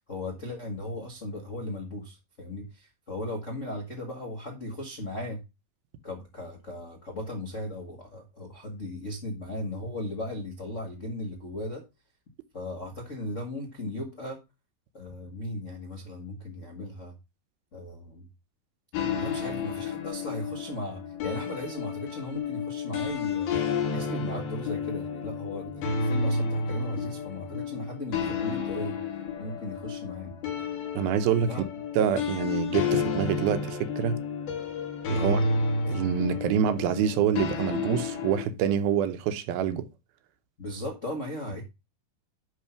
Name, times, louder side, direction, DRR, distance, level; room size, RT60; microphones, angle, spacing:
voice 1, 0.1-5.4 6.0-11.8 12.5-14.4 14.9-17.1 17.7-18.2 19.1-23.5 23.9-29.0 29.4-30.3 31.4-31.6 32.0-32.1 35.1-35.4 40.6-41.6, left 1 dB, 55° left, 0.8 m, -37 dB
sound 1, 18.9-38.5, left 4 dB, 70° left, 3.7 m, -31 dB
voice 2, 30.9-31.5 32.0-34.2 35.1-35.4 35.9-39.9, right 9 dB, 80° right, 2.5 m, -26 dB
11.0 x 3.8 x 5.7 m
omnidirectional pair, 4.5 m